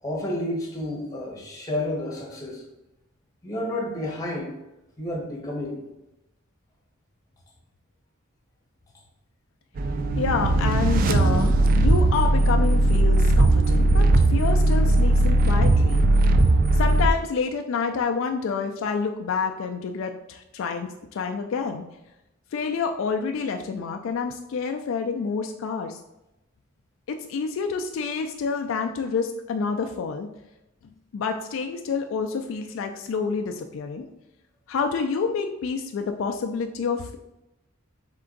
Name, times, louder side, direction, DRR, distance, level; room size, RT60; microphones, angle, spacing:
voice 1, 0.0-2.6 3.4-4.6 5.0-5.8, left 1 dB, 15° left, -2 dB, 1.1 m, -30 dB
sound 1, 9.8-17.1, right 2 dB, 40° right, 0.3 m, -19 dB
voice 2, 10.2-21.8 22.5-26.0 27.1-30.3 31.1-34.1 34.7-37.2, left 5 dB, 65° left, 5 dB, 0.3 m, -28 dB
3.7 x 3.3 x 3.8 m, 0.93 s
head